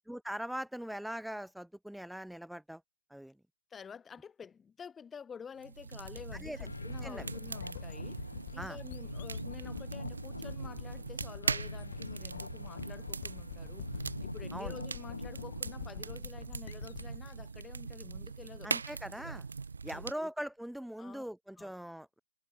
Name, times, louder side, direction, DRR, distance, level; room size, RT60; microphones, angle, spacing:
voice 1, 0.1-2.8 3.1-3.4 6.4-6.6 7.0-7.3 8.6-8.8 14.5-14.8 18.6-19.4 19.8-22.2, equal, ahead, 0.6 m, -41 dB
voice 2, 3.7-18.8 19.2-19.4 19.9-20.3 21.0-21.2 21.6-21.7, left 6 dB, 15° left, 4.8 m, -50 dB
sound 1, 5.6-20.1, right 5 dB, 80° right, 1.4 m, -41 dB
sound 2, 6.0-18.6, left 14 dB, 50° left, 0.7 m, -48 dB
sound 3, 6.7-16.2, left 3 dB, 85° left, 3.3 m, -46 dB
figure-of-eight pair, 115°, 0 cm